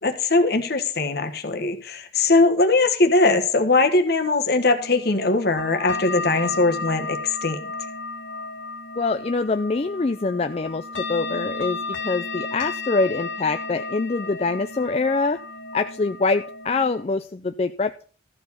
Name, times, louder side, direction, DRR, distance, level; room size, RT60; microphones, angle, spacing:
voice 1, 0.0-7.6, left 3 dB, 55° left, 6 dB, 1.4 m, -20 dB
sound 1, 4.7-17.0, left 3 dB, 75° left, 1.9 m, -33 dB
voice 2, 9.0-11.8 12.0-15.4 15.7-18.0, left 3 dB, 30° left, 8 dB, 0.4 m, -24 dB
14.0 x 4.7 x 7.0 m, 0.42 s
head